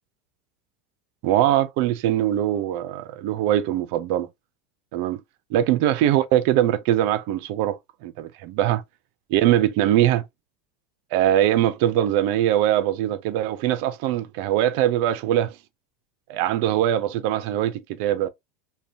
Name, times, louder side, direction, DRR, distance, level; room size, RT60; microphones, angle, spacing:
voice 1, 1.2-4.3 4.9-5.2 5.5-8.8 9.3-10.2 11.1-15.5 16.3-18.3, right 12 dB, 65° right, 0.3 m, -22 dB
2.6 x 2.1 x 2.5 m
supercardioid pair, 115°, 0 cm